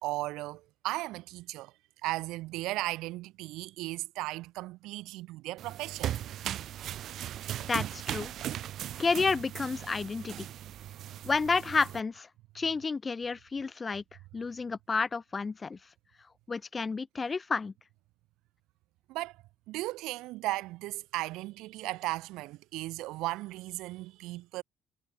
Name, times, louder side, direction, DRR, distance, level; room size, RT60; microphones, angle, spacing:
voice 1, 0.0-1.7 2.0-6.1 19.1-19.4 19.7-24.6, right 19 dB, 80° right, 3.3 m, -36 dB
sound 1, 5.6-12.0, right 11 dB, 55° right, 2.9 m, -38 dB
voice 2, 7.7-8.3 9.0-10.5 11.2-12.3 12.5-14.0 14.3-15.8 16.5-17.7, left 4 dB, 20° left, 2.1 m, -30 dB
cardioid pair, 135°, 0 cm